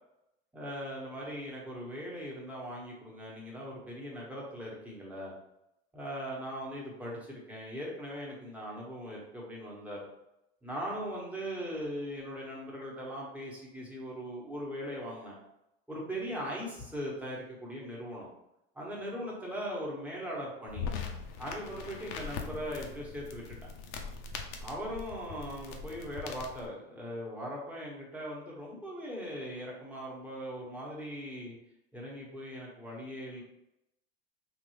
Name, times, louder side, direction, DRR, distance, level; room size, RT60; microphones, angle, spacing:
voice 1, 0.5-5.3 5.9-10.0 10.6-15.3 15.9-18.3 18.7-20.8 21.4-23.6 24.6-31.5 31.9-33.4, equal, 5° right, -4 dB, 1.3 m, -39 dB
sound 1, 20.7-26.7, left 5 dB, 55° left, 0.7 m, -41 dB
3.7 x 2.7 x 3.2 m, 0.87 s
supercardioid pair, 105°, 31 cm